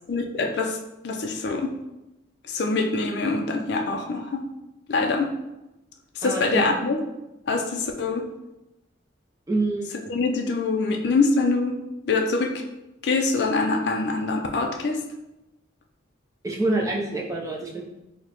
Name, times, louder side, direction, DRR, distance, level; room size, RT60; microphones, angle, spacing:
voice 1, 0.1-0.8 1.0-1.8 2.4-4.5 4.9-5.3 6.2-7.0 7.5-8.2 10.1-11.8 12.0-12.6 13.0-15.0, left 3 dB, 60° left, 3 dB, 0.4 m, -24 dB
voice 2, 9.5-10.0 16.4-17.8, right 2 dB, 15° right, -2 dB, 0.4 m, -26 dB
4.6 x 2.1 x 2.9 m, 0.95 s
head